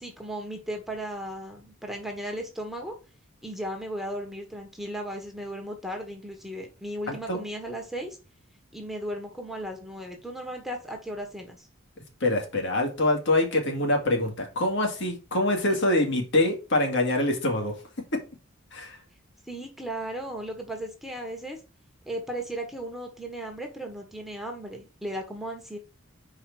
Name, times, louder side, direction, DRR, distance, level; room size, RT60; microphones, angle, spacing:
voice 1, 0.0-2.9 3.4-8.2 8.7-11.7 19.5-21.6 22.1-25.8, right 1 dB, ahead, 2 dB, 1.4 m, -36 dB
voice 2, 7.1-7.4 12.2-17.8 18.1-18.2 18.7-19.0, left 1 dB, 60° left, 2 dB, 2.2 m, -25 dB
4.9 x 4.8 x 6.1 m, 0.32 s
head